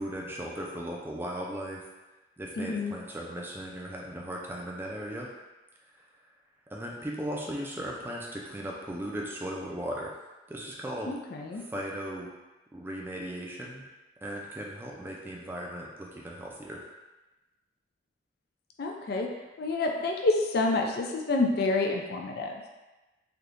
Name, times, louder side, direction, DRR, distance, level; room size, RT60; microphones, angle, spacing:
voice 1, 0.0-1.9 2.4-5.3 6.7-10.1 10.5-11.2 11.6-12.3 12.7-13.8 14.2-16.8, right 1 dB, 10° right, -2 dB, 0.4 m, -37 dB
voice 2, 2.6-3.0 11.1-11.6 18.8-19.3 19.6-22.5, left 3 dB, 60° left, 1 dB, 0.4 m, -28 dB
3.4 x 2.7 x 2.5 m, 1.1 s
head